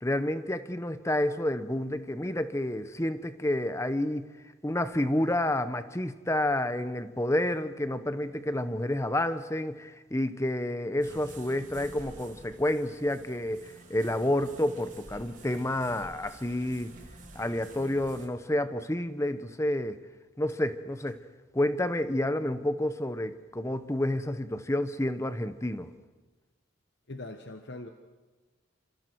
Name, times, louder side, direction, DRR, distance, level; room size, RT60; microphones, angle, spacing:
voice 1, 0.0-4.3 4.6-16.9 17.3-20.0 20.4-21.2 21.5-25.9, left 1 dB, 15° left, 0.9 m, -29 dB
sound 1, 11.0-18.3, right 2 dB, 40° right, 3.2 m, -50 dB
voice 2, 27.1-27.9, left 2 dB, 55° left, 1.2 m, -41 dB
27.5 x 26.5 x 4.7 m
head